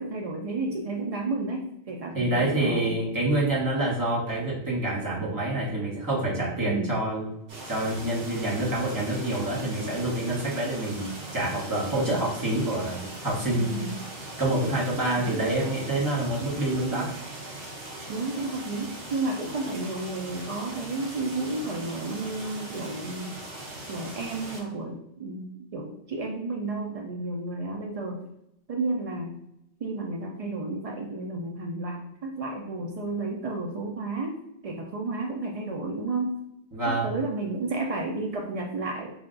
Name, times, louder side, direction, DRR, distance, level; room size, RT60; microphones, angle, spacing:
voice 1, 0.0-3.0 6.6-7.0 13.6-14.0 15.2-15.4 18.1-23.4 23.9-28.3 28.7-29.4 29.8-36.4 36.9-39.1, right 2 dB, 65° right, 1 dB, 0.3 m, -32 dB
voice 2, 2.1-7.3 7.7-13.7 14.4-17.1 36.7-37.1, right 1 dB, 20° right, -5 dB, 0.9 m, -27 dB
sound 1, 7.5-24.6, right 2 dB, 90° right, 1.3 m, -40 dB
3.6 x 2.2 x 3.7 m, 0.82 s
omnidirectional pair, 1.1 m